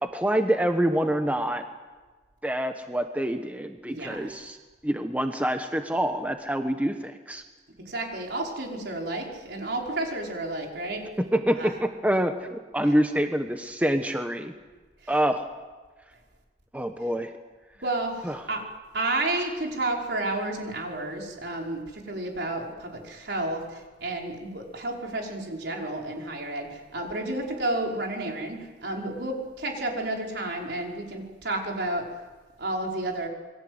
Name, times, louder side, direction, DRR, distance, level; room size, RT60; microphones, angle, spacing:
voice 1, 0.0-1.6 2.4-4.6 4.8-7.4 11.3-14.5 15.1-15.5 16.7-17.3 18.2-18.4, right 1 dB, 10° right, 6 dB, 1.2 m, -26 dB
voice 2, 3.9-4.4 7.9-11.0 11.6-11.7 12.8-12.9 15.0-15.1 17.8-18.6 18.9-32.2 32.6-33.3, right 2 dB, 65° right, 0 dB, 5.4 m, -31 dB
28.0 x 22.0 x 8.1 m, 1.3 s
head